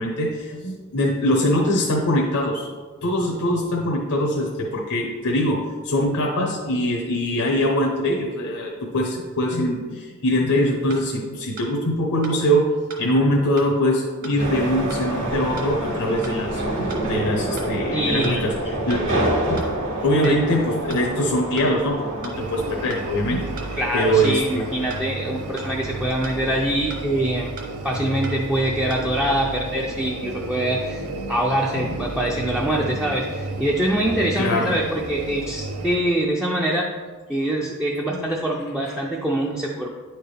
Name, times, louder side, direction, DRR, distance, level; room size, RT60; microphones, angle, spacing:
voice 1, 0.0-2.7 3.0-12.7 13.0-18.5 18.9-19.1 19.4-19.7 20.0-24.7 31.6-31.9 34.3-34.7 38.1-38.3 38.9-39.0 39.5-39.6, equal, 85° left, 0 dB, 0.9 m, -23 dB
sound 1, 10.2-10.4 10.9-11.0 11.6-11.7 12.2-12.4 12.9-13.0 13.6-13.7 14.2-14.4 14.9-15.0 15.6-15.7 16.2-16.4 16.9-17.0 17.6-17.7 18.2-18.4 18.9-19.0 19.6-19.7 20.2-20.4 20.9-21.0 21.6-21.7 22.2-22.4 22.9-23.0 23.6-23.7 24.2-24.4 24.9-25.0 25.6-25.7 26.2-26.4 26.9-27.0 27.6-27.7 28.2-28.4 28.9-29.0, right 4 dB, 40° right, 1.1 m, -38 dB
sound 2, 14.4-26.7, right 1 dB, 60° right, 2.0 m, -28 dB
voice 2, 17.9-18.4 20.2-20.4 23.8-27.5 27.8-36.9 37.3-39.9, right 1 dB, 5° right, -3 dB, 0.4 m, -24 dB
sound 3, 22.3-36.0, right 2 dB, 75° right, 0.6 m, -32 dB
9.2 x 4.5 x 3.3 m, 1.5 s
head